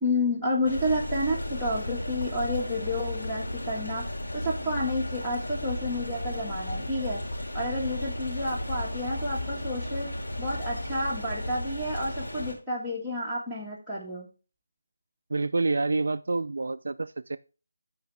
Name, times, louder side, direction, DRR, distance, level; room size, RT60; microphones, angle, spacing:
voice 1, 0.0-4.0 4.3-7.2 7.5-10.1 10.4-14.3, left 1 dB, ahead, -11 dB, 1.6 m, -30 dB
sound 1, 0.6-12.5, left 1 dB, 80° left, 3.0 m, -34 dB
voice 2, 15.3-17.4, right 3 dB, 65° right, 12 dB, 0.4 m, -28 dB
12.5 x 4.5 x 3.3 m, 0.33 s
figure-of-eight pair, 175°, 0 cm